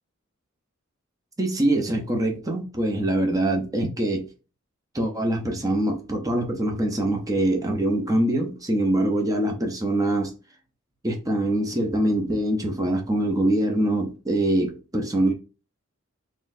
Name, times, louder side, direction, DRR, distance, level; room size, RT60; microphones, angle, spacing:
voice 1, 1.4-4.2 4.9-10.3 11.0-15.3, right 1 dB, 15° right, 0.7 m, -24 dB
3.9 x 3.0 x 2.6 m
head